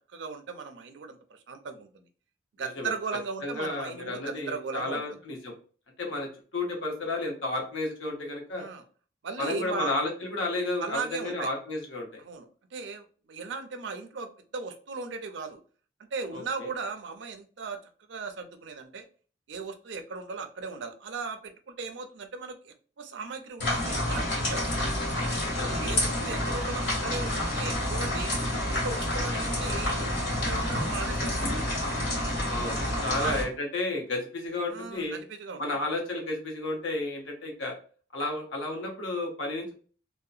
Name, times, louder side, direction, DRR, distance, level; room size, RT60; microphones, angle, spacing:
voice 1, 0.1-2.0 2.6-5.0 8.6-8.8 9.2-9.9 10.8-11.5 12.2-15.6 16.1-17.8 18.1-19.0 19.5-24.7 25.7-28.3 28.7-31.7 33.0-33.3 34.7-35.6, right 4 dB, 70° right, 8 dB, 0.4 m, -37 dB
voice 2, 2.6-2.9 3.4-5.5 6.0-8.7 9.4-12.2 16.3-16.7 25.4-25.9 32.5-35.2 35.6-37.7 38.1-39.8, left 2 dB, 85° left, 1 dB, 0.8 m, -32 dB
sound 1, 23.6-33.4, left 1 dB, 70° left, 1.5 m, -29 dB
2.7 x 2.1 x 2.4 m, 0.40 s
head